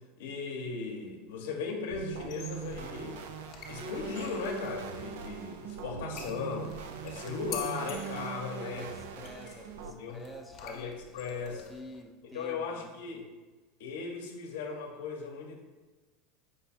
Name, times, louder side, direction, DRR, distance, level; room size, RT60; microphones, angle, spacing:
voice 1, 0.2-3.2 3.7-6.8 7.0-8.9 9.1-9.2 9.8-10.2 10.6-11.6 12.3-13.2 13.8-15.6, left 5 dB, 85° left, 3 dB, 0.7 m, -37 dB
sound 1, 1.9-9.9, right 8 dB, 85° right, 0.4 m, -41 dB
sound 2, 2.3-12.0, left 7 dB, 45° left, 0.6 m, -49 dB
Keyboard (musical), 3.8-6.6, left 1 dB, 25° right, 0.9 m, -47 dB
voice 2, 8.5-12.9, equal, ahead, 1 dB, 0.4 m, -49 dB
5.0 x 2.3 x 4.1 m, 1.2 s
supercardioid pair, 135°, 0 cm